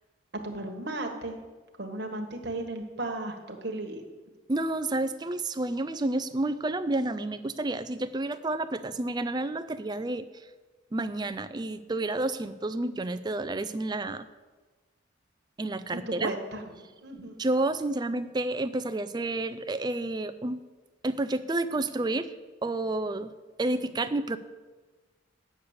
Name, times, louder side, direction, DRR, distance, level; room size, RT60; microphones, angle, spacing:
voice 1, 0.4-1.4 1.8-4.0 15.9-16.7 17.0-17.4, right 2 dB, 50° right, 3 dB, 1.4 m, -35 dB
voice 2, 4.5-10.2 10.9-14.3 15.6-16.3 17.4-20.6 21.0-22.3 22.6-23.3 23.6-24.4, right 2 dB, 20° right, 12 dB, 0.4 m, -30 dB
8.4 x 6.6 x 8.0 m, 1.3 s
head